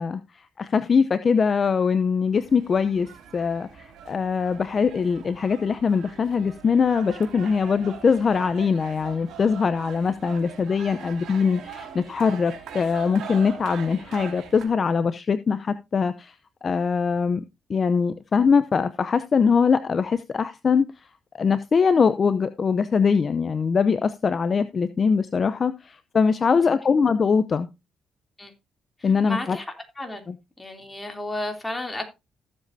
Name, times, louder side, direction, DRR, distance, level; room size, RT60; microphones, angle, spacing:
voice 1, 0.0-16.3 16.6-17.4 17.7-20.9 21.3-27.7 29.0-29.6 30.3-30.4, left 5 dB, 40° left, 0.6 m, -22 dB
sound 1, 2.3-14.7, right 7 dB, 75° right, 2.6 m, -42 dB
voice 2, 29.0-29.7 30.0-30.2 30.6-32.1, left 1 dB, 15° left, 3.0 m, -32 dB
15.5 x 7.5 x 2.7 m
cardioid pair, 90°, 0 cm